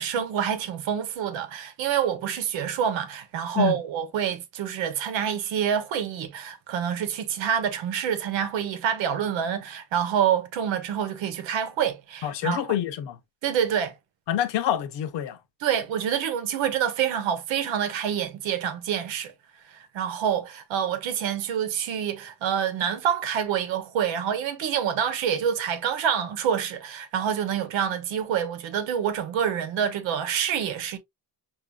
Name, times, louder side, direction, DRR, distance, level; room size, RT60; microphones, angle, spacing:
voice 1, 0.0-12.6 13.4-14.0 15.6-19.3 19.7-31.0, right 8 dB, 90° right, 1.1 m, -27 dB
voice 2, 12.2-13.2 14.3-15.4, left 10 dB, 70° left, 0.8 m, -26 dB
5.6 x 2.7 x 2.3 m
cardioid pair, 135°, 44 cm